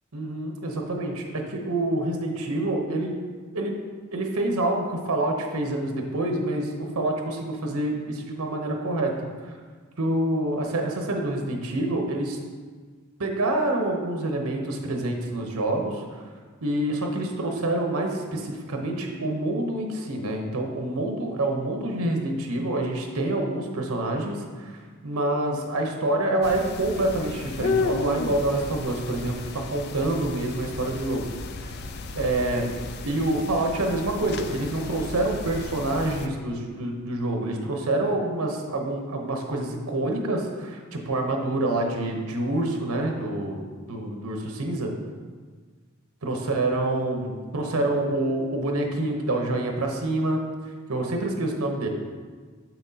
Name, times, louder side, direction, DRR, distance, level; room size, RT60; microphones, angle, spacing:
voice 1, 0.1-3.1 3.5-3.8 4.1-9.1 9.4-9.5 10.0-12.4 13.2-16.2 16.6-24.8 25.0-31.3 31.6-31.7 32.2-32.7 33.0-43.6 43.9-44.9 46.2-50.4 50.9-51.9, right 1 dB, 90° right, 2 dB, 0.8 m, -27 dB
sound 1, 26.4-36.3, left 4 dB, 50° left, 0.3 m, -33 dB
6.9 x 5.9 x 2.8 m, 1.5 s
head